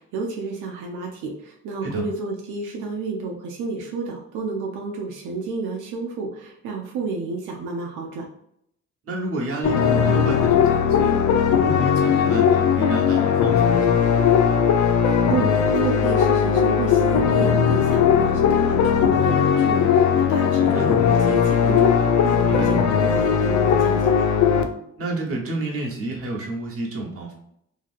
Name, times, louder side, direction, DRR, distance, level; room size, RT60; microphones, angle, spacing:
voice 1, 0.0-8.3 15.3-24.3, right 4 dB, 90° right, -1 dB, 0.6 m, -30 dB
voice 2, 9.1-11.1 11.6-14.1 20.6-20.9 22.5-22.7 25.0-27.3, right 2 dB, 50° right, -1 dB, 1.1 m, -30 dB
sound 1, 9.6-24.6, left 7 dB, 75° left, 0.5 m, -18 dB
2.8 x 2.8 x 2.5 m, 0.74 s
cardioid pair, 90°, 30 cm